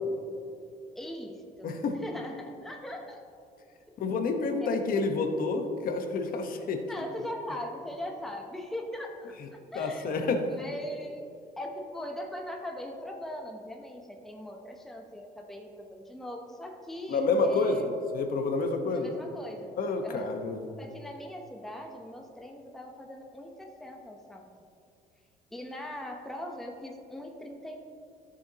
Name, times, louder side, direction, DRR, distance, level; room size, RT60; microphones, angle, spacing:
voice 1, 0.9-3.2 6.9-10.1 10.5-11.2 11.6-17.9 18.9-19.7 20.0-20.3 20.8-24.5 25.5-27.8, equal, ahead, 2 dB, 0.7 m, -40 dB
voice 2, 1.6-2.0 4.0-7.1 9.7-10.4 17.1-19.1 19.8-20.7, left 3 dB, 60° left, 6 dB, 1.0 m, -29 dB
13.0 x 6.9 x 2.8 m, 2.5 s
cardioid pair, 110°, 17 cm